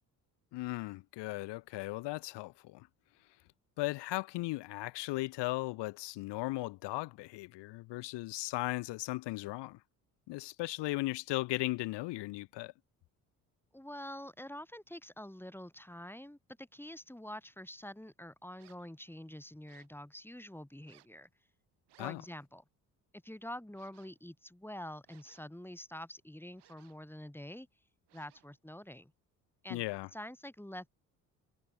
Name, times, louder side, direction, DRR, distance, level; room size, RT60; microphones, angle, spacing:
voice 1, 0.5-2.9 3.8-9.8 10.3-12.7 22.0-22.2 29.7-30.1, left 20 dB, 65° left, 1.3 m, -37 dB
voice 2, 13.7-21.3 22.0-22.6 23.1-27.7 28.1-29.1 29.6-29.8 30.1-30.9, left 1 dB, 5° left, 3.2 m, -46 dB
Multiple Organ Scratches, 18.6-18.9 19.6-20.0 20.8-21.2 21.9-22.3 23.7-24.2 25.0-25.7 26.5-27.1 28.1-28.6, right 14 dB, 60° right, 4.2 m, -66 dB
hypercardioid pair, 50°, 45 cm